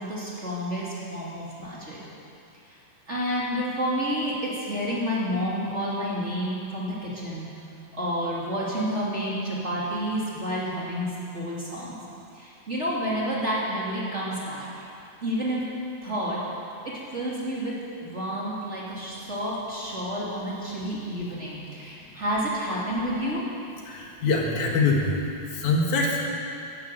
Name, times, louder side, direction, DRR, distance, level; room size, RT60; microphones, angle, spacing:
voice 1, 0.0-2.0 3.1-7.5 7.9-12.0 12.3-14.7 15.2-15.7 16.0-16.4 16.8-17.7 18.0-23.4, equal, 25° right, -6 dB, 3.0 m, -29 dB
voice 2, 23.9-25.2 25.5-26.3, left 3 dB, 75° left, -1 dB, 3.2 m, -24 dB
15.0 x 12.0 x 7.8 m, 2.6 s
omnidirectional pair, 3.4 m